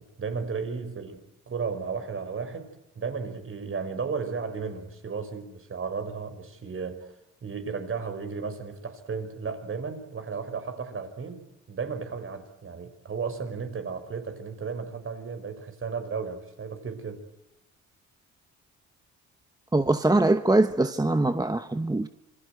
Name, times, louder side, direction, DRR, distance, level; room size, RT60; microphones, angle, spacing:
voice 1, 0.0-2.7 3.0-7.1 7.4-17.2, right 5 dB, 45° right, 5.2 m, -34 dB
voice 2, 19.7-22.1, right 2 dB, 10° right, 1.0 m, -22 dB
27.0 x 23.5 x 8.0 m
cardioid pair, 90°, 30 cm